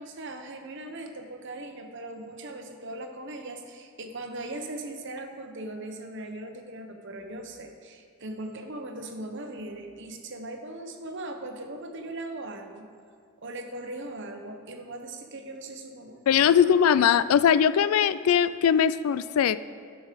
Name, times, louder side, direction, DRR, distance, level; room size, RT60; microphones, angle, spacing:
voice 1, 0.0-12.9 13.4-16.2 16.6-16.9, right 2 dB, 55° right, 4 dB, 1.0 m, -39 dB
voice 2, 16.3-19.6, left 8 dB, 75° left, 15 dB, 0.3 m, -21 dB
12.0 x 6.1 x 5.1 m, 2.1 s
head